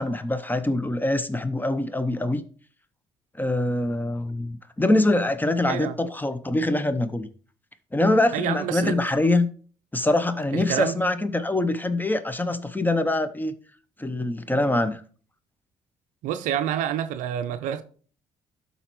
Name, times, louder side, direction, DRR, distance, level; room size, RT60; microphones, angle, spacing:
voice 1, 0.0-2.4 3.3-7.3 7.9-9.5 9.9-13.5 14.0-15.0, left 2 dB, 15° left, 0.8 m, -24 dB
voice 2, 8.3-9.0 10.5-11.0 16.2-17.8, right 10 dB, 75° right, 0.5 m, -27 dB
12.0 x 4.1 x 3.1 m
hypercardioid pair, 50°, 14 cm